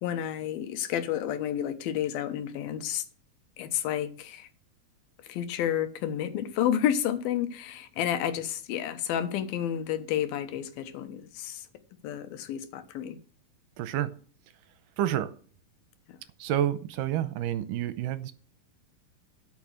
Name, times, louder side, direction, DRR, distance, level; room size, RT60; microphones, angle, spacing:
voice 1, 0.0-3.1 3.6-4.5 5.2-11.7 12.0-13.2 16.1-16.2, left 10 dB, 90° left, 2.9 m, -30 dB
voice 2, 13.8-14.1 15.0-15.3 16.4-18.3, right 11 dB, 80° right, 2.3 m, -29 dB
12.5 x 6.1 x 6.4 m
omnidirectional pair, 4.1 m